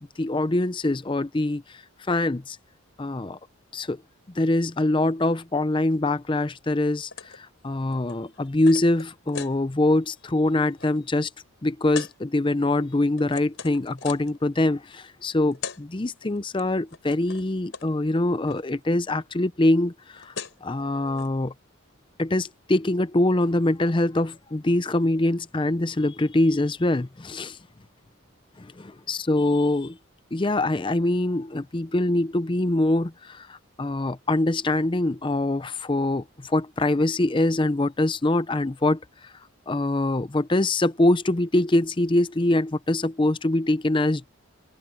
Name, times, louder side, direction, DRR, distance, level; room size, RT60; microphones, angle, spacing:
voice 1, 0.2-2.6 3.0-3.4 3.7-4.0 4.3-11.3 11.6-20.3 20.6-21.5 22.2-27.6 28.6-30.0 30.3-39.3 39.7-44.3, left 2 dB, 25° left, 0.5 m, -24 dB
sound 1, 7.1-7.4 7.7-9.6 10.1-10.3 10.6-10.9 11.9-12.1 12.8-14.4 15.2-15.3 15.5-15.8 16.1-16.6 16.9-17.5 17.7-17.9 18.1-18.6 19.9-20.0 20.1-20.7 21.1-21.3, left 6 dB, 65° left, 4.6 m, -39 dB
head